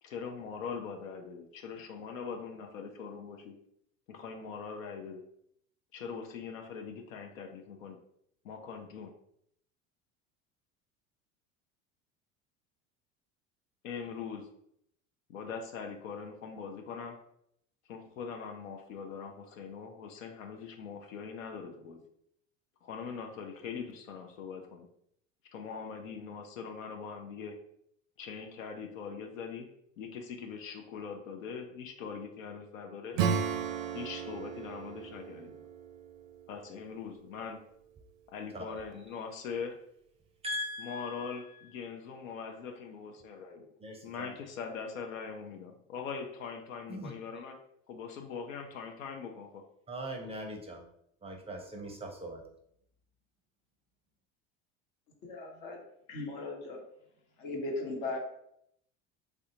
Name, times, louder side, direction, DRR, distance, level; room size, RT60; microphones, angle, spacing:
voice 1, 0.0-3.6 4.1-5.2 5.9-8.0 8.4-9.1 13.8-14.5 15.3-17.2 17.8-22.0 22.8-24.9 25.5-27.6 28.2-29.7 30.0-33.2 33.9-35.7 36.5-37.6 38.3-39.8 40.8-43.7 44.0-47.6 47.9-49.6, left 6 dB, 85° left, 4 dB, 0.5 m, -42 dB
Acoustic guitar / Strum, 33.1-37.5, right 7 dB, 75° right, 0.5 m, -35 dB
voice 2, 40.4-41.4 43.8-44.4 46.9-47.1 49.9-50.8 51.2-52.4, equal, 15° right, 2 dB, 0.5 m, -40 dB
voice 3, 55.2-55.8 56.1-56.8 57.4-58.2, left 2 dB, 65° left, 1 dB, 1.1 m, -37 dB
3.3 x 2.4 x 2.8 m, 0.72 s
hypercardioid pair, 80°, 39 cm